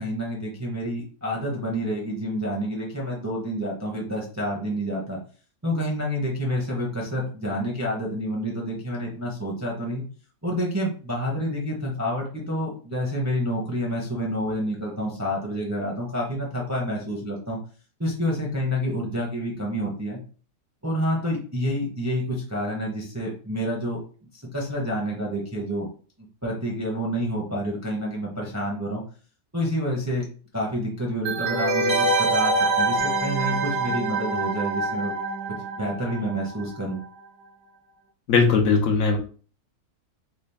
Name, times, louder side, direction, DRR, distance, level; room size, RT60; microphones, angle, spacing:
voice 1, 0.0-5.2 5.6-10.0 10.4-17.6 18.0-20.2 20.8-24.0 24.3-25.9 26.4-29.0 29.5-30.2 30.5-35.1 35.7-37.0, equal, 15° right, -2 dB, 0.6 m, -28 dB
sound 1, 31.2-36.7 37.0-37.1, right 2 dB, 65° right, 1.1 m, -25 dB
voice 2, 38.3-39.2, left 5 dB, 65° left, 2 dB, 1.0 m, -19 dB
3.9 x 2.4 x 3.4 m, 0.40 s
omnidirectional pair, 1.6 m